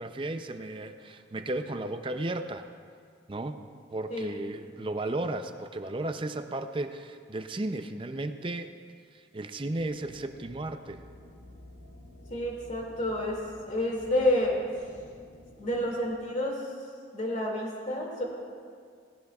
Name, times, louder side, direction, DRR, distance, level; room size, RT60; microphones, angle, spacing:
voice 1, 0.0-2.6 3.3-3.6 3.9-8.7 9.1-11.0, right 2 dB, 30° right, 8 dB, 0.5 m, -34 dB
sound 1, 9.8-16.1, left 1 dB, 85° left, 3.0 m, -52 dB
voice 2, 12.3-14.6 15.6-16.6 17.1-18.2, left 1 dB, 40° left, -1 dB, 2.3 m, -29 dB
18.5 x 16.0 x 2.4 m, 2.1 s
head